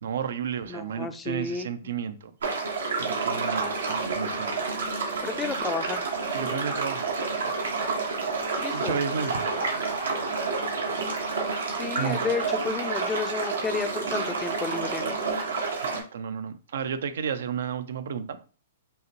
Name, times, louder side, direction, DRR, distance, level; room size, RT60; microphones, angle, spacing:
voice 1, 0.0-2.3 3.0-4.6 6.3-8.0 8.7-11.1 12.0-12.2 15.8-18.4, right 7 dB, 70° right, 0.5 m, -33 dB
voice 2, 0.7-1.7 5.2-6.0 8.6-9.0 11.8-15.2, left 5 dB, 15° left, 0.4 m, -32 dB
sound 1, 2.4-16.0, right 4 dB, 90° right, 1.2 m, -29 dB
5.4 x 2.1 x 3.0 m
hypercardioid pair, 135°, 0 cm